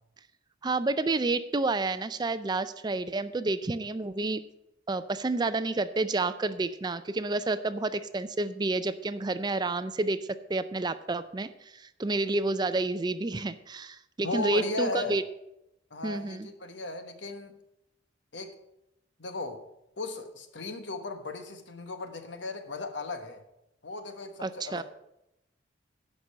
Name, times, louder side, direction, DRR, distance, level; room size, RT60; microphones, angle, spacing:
voice 1, 0.6-4.4 4.9-15.2 16.0-16.5 24.4-24.8, right 2 dB, 25° right, 13 dB, 0.4 m, -30 dB
voice 2, 14.2-15.2 15.9-17.6 18.3-18.5 19.2-19.6 20.0-23.4 23.8-24.8, left 3 dB, 75° left, 7 dB, 1.2 m, -36 dB
10.5 x 5.4 x 7.4 m, 0.85 s
head